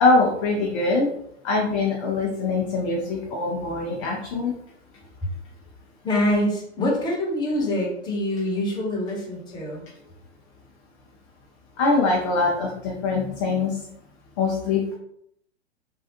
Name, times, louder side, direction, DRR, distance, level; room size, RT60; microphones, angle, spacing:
voice 1, 0.0-1.1 1.4-4.5 11.8-13.7 14.4-15.0, left 3 dB, 30° left, -2 dB, 0.5 m, -23 dB
voice 2, 6.0-9.8, left 1 dB, 10° left, -4 dB, 0.9 m, -25 dB
3.5 x 2.3 x 2.7 m, 0.74 s
figure-of-eight pair, 110°, 35 cm